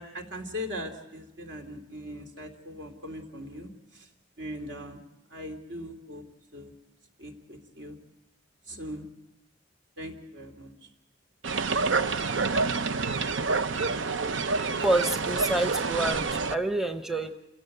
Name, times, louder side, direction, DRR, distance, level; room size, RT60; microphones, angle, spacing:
voice 1, 0.0-4.1 4.4-5.0 5.3-6.2 6.5-6.7 7.2-8.0 8.7-9.1 10.0-10.7, equal, 70° right, 4 dB, 2.9 m, -40 dB
sound 1, 11.4-16.6, right 4 dB, 90° right, 0.7 m, -27 dB
voice 2, 14.8-17.3, right 2 dB, ahead, 7 dB, 0.8 m, -28 dB
27.5 x 16.5 x 7.9 m, 0.96 s
head